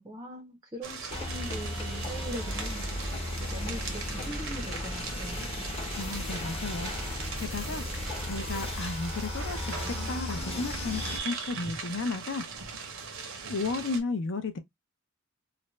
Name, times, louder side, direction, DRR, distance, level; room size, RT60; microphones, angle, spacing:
voice 1, 0.0-2.8 3.4-5.7, right 1 dB, 15° right, 0.5 m, -41 dB
sound 1, 0.8-14.0, right 5 dB, 60° right, 0.7 m, -40 dB
sound 2, 1.1-11.2, left 1 dB, 25° left, 0.8 m, -35 dB
voice 2, 6.0-12.4 13.5-14.6, left 3 dB, 55° left, 0.5 m, -34 dB
2.5 x 2.1 x 3.0 m
head